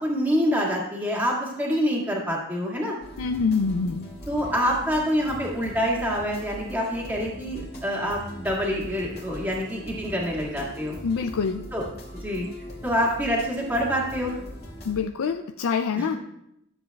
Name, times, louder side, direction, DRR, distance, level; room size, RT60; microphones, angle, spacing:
voice 1, 0.0-3.0 4.3-11.0 11.7-11.8 12.1-12.5 12.8-14.3 15.9-16.2, equal, 10° right, -3 dB, 2.0 m, -26 dB
sound 1, 3.0-14.9, equal, 45° left, 2.3 m, -41 dB
voice 2, 3.2-4.1 11.0-11.6 14.9-16.2, left 5 dB, 65° left, 8 dB, 0.4 m, -25 dB
13.0 x 7.7 x 2.3 m, 0.83 s
head